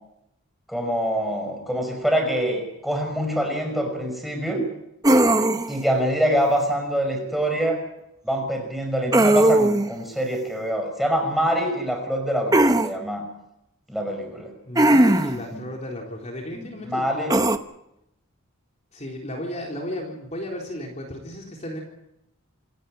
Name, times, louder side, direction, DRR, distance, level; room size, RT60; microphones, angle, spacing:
voice 1, 0.7-4.6 5.7-7.8 8.2-13.2 13.9-14.5 15.5-15.6 16.5-17.4, equal, ahead, 2 dB, 5.6 m, -25 dB
sound 1, 5.0-5.8 9.1-9.9 12.5-12.9 14.8-15.4 17.3-17.6, right 1 dB, 15° right, 0.9 m, -18 dB
voice 2, 14.7-17.3 18.9-21.8, left 1 dB, 30° left, 0 dB, 3.9 m, -34 dB
27.5 x 13.5 x 9.6 m, 0.84 s
head